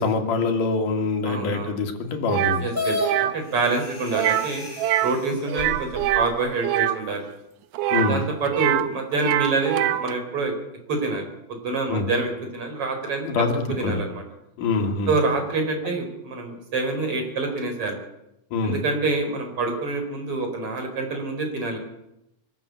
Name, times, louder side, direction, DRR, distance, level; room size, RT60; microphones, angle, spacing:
voice 1, 0.0-2.6 7.9-8.2 11.9-12.1 13.3-14.0 14.6-15.1 18.5-18.8, left 4 dB, 80° left, 4 dB, 3.8 m, -24 dB
voice 2, 1.2-1.7 2.6-4.6 5.0-7.3 7.9-10.5 10.9-14.2 15.1-18.0 18.6-21.8, right 3 dB, 45° right, 4 dB, 5.0 m, -27 dB
sound 1, 2.3-2.6 3.0-3.3 4.1-4.5 4.8-5.2 5.5-7.0 7.7-8.9 9.1-10.1, right 13 dB, 85° right, 2.5 m, -24 dB
sound 2, 2.7-3.1 4.1-4.2 4.8-4.9 5.6-6.3, left 2 dB, 15° left, 6.2 m, -27 dB
sound 3, 3.4-6.1, left 3 dB, 55° left, 7.5 m, -43 dB
24.0 x 13.0 x 8.3 m, 0.86 s
omnidirectional pair, 3.7 m